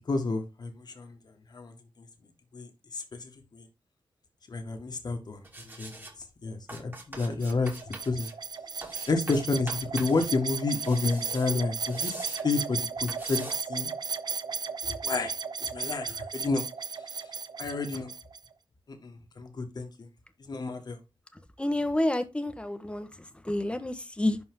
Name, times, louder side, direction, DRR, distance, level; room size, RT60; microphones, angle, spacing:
voice 1, 0.1-1.2 1.5-2.1 2.5-3.7 4.5-5.5 5.8-6.0 6.4-8.3 9.1-13.9 14.8-15.3 15.6-16.6 17.6-18.1 18.9-20.1 20.5-21.0, left 3 dB, 55° left, 1.8 m, -30 dB
sound 1, 5.4-6.1 6.7-8.3 8.8-10.3 10.6-12.5 13.1-13.6, right 2 dB, 25° right, 2.4 m, -44 dB
sound 2, 7.4-18.5, right 5 dB, 55° right, 0.7 m, -35 dB
voice 2, 21.6-23.1 23.4-24.4, left 1 dB, 15° left, 1.2 m, -29 dB
11.0 x 4.3 x 3.7 m
wide cardioid pair, 95°, 9 cm